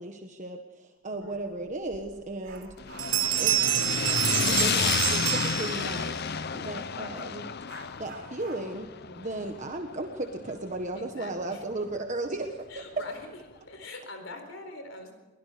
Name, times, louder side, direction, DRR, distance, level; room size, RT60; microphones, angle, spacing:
voice 1, 0.0-2.7 3.4-6.2 6.5-7.4 7.8-8.9 9.2-12.5, right 2 dB, 35° right, 4 dB, 1.4 m, -36 dB
voice 2, 1.1-1.6 9.0-9.5 11.0-11.8 12.7-13.4 13.7-15.1, left 2 dB, 75° left, 6 dB, 4.2 m, -44 dB
Dog, 1.1-1.2 1.7-3.6 4.4-4.8 6.8-6.9 7.6-10.9 11.3-11.4 11.9-12.0 12.6-13.1 13.4-13.7, right 3 dB, 55° right, 5.1 m, -50 dB
Bell, 1.9-2.0 2.5-2.7 3.0-6.1, right 13 dB, 70° right, 1.3 m, -27 dB
sound 1, 2.8-11.0, left 6 dB, 50° left, 0.7 m, -31 dB
23.5 x 21.0 x 5.1 m, 1.2 s
head